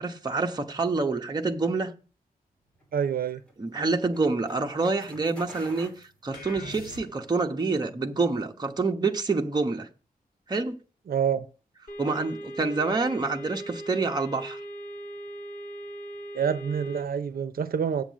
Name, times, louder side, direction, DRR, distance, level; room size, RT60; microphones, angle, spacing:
voice 1, 0.0-1.9 3.6-5.9 6.2-9.9 10.5-10.8 12.0-14.6, right 3 dB, 25° right, 1.0 m, -27 dB
sound 1, 2.7-7.2, equal, 5° left, 3.2 m, -49 dB
voice 2, 2.9-3.4 11.1-11.5 16.3-18.0, right 7 dB, 75° right, 0.6 m, -27 dB
sound 2, 6.3-7.5, left 2 dB, 90° left, 1.4 m, -43 dB
sound 3, 11.9-17.0, right 1 dB, 55° left, 1.6 m, -39 dB
7.5 x 7.3 x 6.2 m
wide cardioid pair, 165°, 15 cm